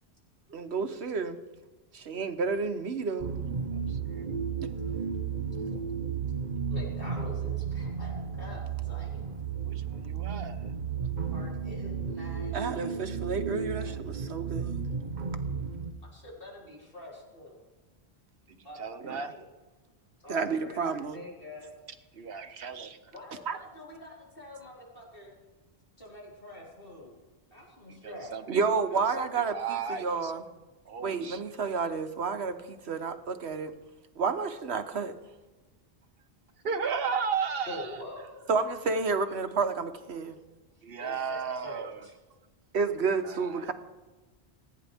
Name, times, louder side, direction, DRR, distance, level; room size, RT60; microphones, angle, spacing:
voice 1, 0.5-1.4 1.9-3.4 4.6-4.7 12.5-14.8 19.0-19.2 20.3-21.2 22.4-23.0 23.5-23.6 28.5-30.4 31.0-33.7 34.2-35.2 38.5-40.4 42.7-43.7, right 4 dB, 80° right, 8 dB, 1.3 m, -31 dB
sound 1, 3.2-15.9, right 6 dB, 45° right, 1.1 m, -33 dB
voice 2, 3.7-4.3 9.6-10.6 13.8-13.9 18.8-19.3 22.1-22.9 27.9-28.6 29.2-30.3 30.9-31.4 36.6-38.0 40.8-42.0 43.2-43.7, right 6 dB, 65° right, 8 dB, 1.3 m, -35 dB
voice 3, 6.7-9.2 11.3-12.8 16.1-17.6 18.6-19.5 20.2-20.8 21.1-21.7 23.1-25.3 26.0-27.2 27.5-28.3 37.7-38.5 41.0-42.1, left 1 dB, 60° left, -5 dB, 5.1 m, -45 dB
29.0 x 9.8 x 3.5 m, 1.2 s
omnidirectional pair, 1.1 m